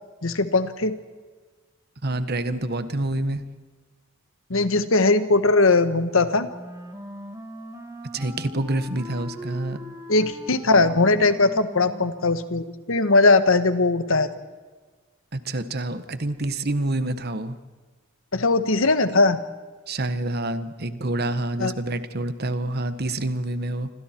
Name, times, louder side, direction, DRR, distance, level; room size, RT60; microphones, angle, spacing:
voice 1, 0.2-0.9 4.5-6.5 10.1-14.3 18.3-19.4 21.6-21.7, left 3 dB, 75° left, 11 dB, 1.4 m, -20 dB
voice 2, 2.0-3.4 8.1-9.8 15.3-17.6 19.9-23.9, right 2 dB, 50° right, 11 dB, 1.4 m, -27 dB
Wind instrument woodwind instrument, 6.5-12.7, equal, 15° right, 2.5 m, -40 dB
28.0 x 26.0 x 4.5 m, 1.4 s
head